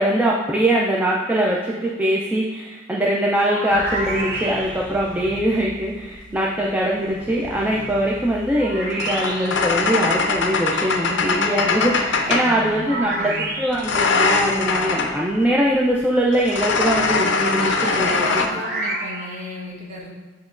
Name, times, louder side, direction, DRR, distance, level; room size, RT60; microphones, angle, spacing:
voice 1, 0.0-13.3 13.6-18.3, right 1 dB, 10° right, -4 dB, 0.3 m, -22 dB
sound 1, 3.4-5.0 8.6-9.7 12.8-14.1 18.2-19.5, right 2 dB, 55° right, 0.7 m, -29 dB
sound 2, 3.7-5.8 7.0-12.6 13.7-15.2 16.3-18.5, left 4 dB, 65° left, 0.4 m, -23 dB
voice 2, 6.3-6.6 12.2-13.5 17.6-20.1, equal, 35° right, -4 dB, 1.1 m, -33 dB
7.4 x 2.9 x 2.4 m, 1.3 s
head